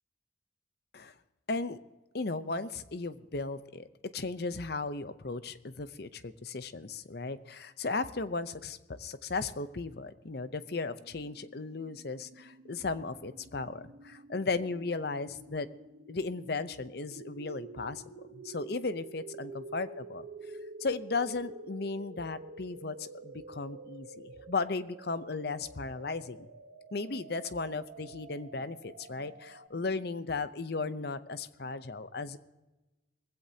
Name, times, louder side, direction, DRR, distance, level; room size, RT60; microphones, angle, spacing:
voice 1, 1.5-1.8 2.1-3.9 4.1-15.7 16.1-20.3 20.8-26.5 26.9-32.4, left 3 dB, 55° left, 13 dB, 0.7 m, -36 dB
sound 1, 10.9-29.7, right 3 dB, 80° right, 1.1 m, -49 dB
20.5 x 16.0 x 2.8 m, 1.1 s
head